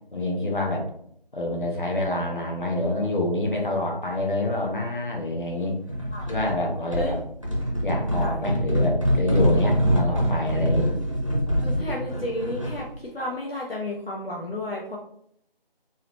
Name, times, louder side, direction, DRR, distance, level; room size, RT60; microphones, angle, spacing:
voice 1, 0.1-0.9 1.3-5.8 6.3-7.2 7.8-10.9, left 1 dB, 55° left, -1 dB, 1.2 m, -27 dB
sound 1, 5.9-6.6 6.9-12.9, equal, 35° right, 0.7 m, -24 dB
voice 2, 11.6-15.0, left 1 dB, 75° left, -2 dB, 0.9 m, -32 dB
4.0 x 2.7 x 3.0 m, 0.69 s
figure-of-eight pair, 175°, 30 cm